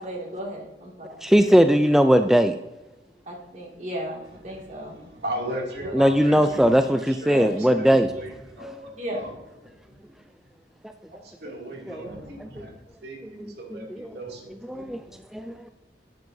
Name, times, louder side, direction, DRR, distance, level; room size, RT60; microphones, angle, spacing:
voice 1, 0.0-1.3 3.3-5.0 5.8-6.9 7.2-7.7 9.0-9.3, right 1 dB, 40° right, -1 dB, 2.3 m, -36 dB
voice 2, 1.2-2.5 5.9-8.1 11.9-12.1 12.4-12.6 13.4-14.2 14.7-15.0 15.3-15.7, equal, ahead, 8 dB, 0.3 m, -20 dB
voice 3, 4.7-7.5 7.8-9.3 11.1-12.7 13.0-14.9, right 1 dB, 65° right, -1 dB, 2.6 m, -37 dB
11.5 x 9.3 x 2.7 m, 1.0 s
head